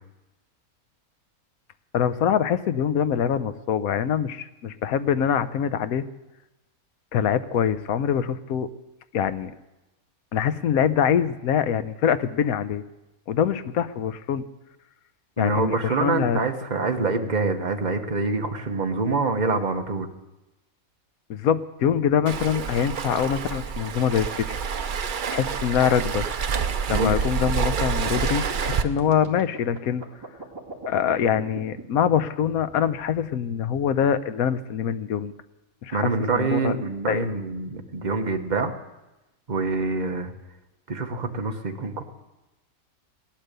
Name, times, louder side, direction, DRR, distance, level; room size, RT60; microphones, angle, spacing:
voice 1, 1.9-6.0 7.1-8.7 9.1-9.5 10.3-12.8 13.3-14.4 15.4-16.4 21.3-24.4 25.3-26.3 26.9-30.0 30.9-35.3 35.8-36.7 37.1-37.2, left 8 dB, 75° left, 12 dB, 1.2 m, -24 dB
voice 2, 15.4-20.1 26.9-27.1 35.9-38.8 39.5-40.3 40.9-42.0, right 3 dB, 30° right, 4 dB, 1.2 m, -25 dB
Waves surf, 22.3-28.8, right 6 dB, 50° right, 0.6 m, -27 dB
sound 1, 28.5-33.4, right 3 dB, 15° right, 2.1 m, -40 dB
17.0 x 12.0 x 6.7 m, 1.0 s
omnidirectional pair, 1.6 m